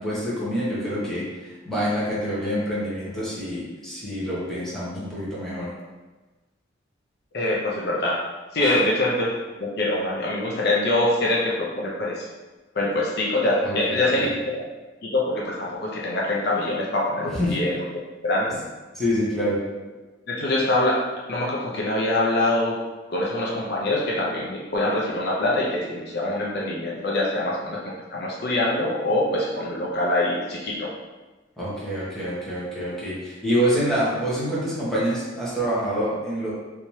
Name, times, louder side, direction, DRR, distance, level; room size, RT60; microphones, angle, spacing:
voice 1, 0.0-5.7 8.6-8.8 13.6-14.3 17.3-17.6 18.9-19.6 31.6-36.5, equal, ahead, -9 dB, 1.1 m, -26 dB
voice 2, 7.3-8.2 8.5-9.3 9.6-12.3 12.8-14.3 15.0-18.6 20.3-21.0 21.3-22.8 23.1-27.8 28.1-30.9, left 1 dB, 55° left, -3 dB, 0.5 m, -24 dB
3.4 x 2.8 x 3.0 m, 1.2 s
head